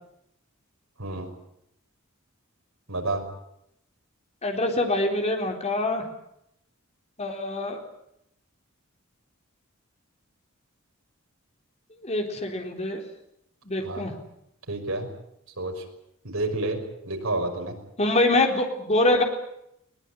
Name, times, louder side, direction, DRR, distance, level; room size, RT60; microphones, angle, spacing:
voice 1, 2.9-3.2 13.8-14.1 14.7-15.1 15.6-15.8 16.2-17.7, right 2 dB, 80° right, 3 dB, 5.7 m, -29 dB
voice 2, 4.4-6.0 7.2-7.8 12.0-13.0 13.6-14.1 18.0-19.2, left 2 dB, 30° left, 3 dB, 4.0 m, -24 dB
22.0 x 19.5 x 10.0 m, 0.78 s
head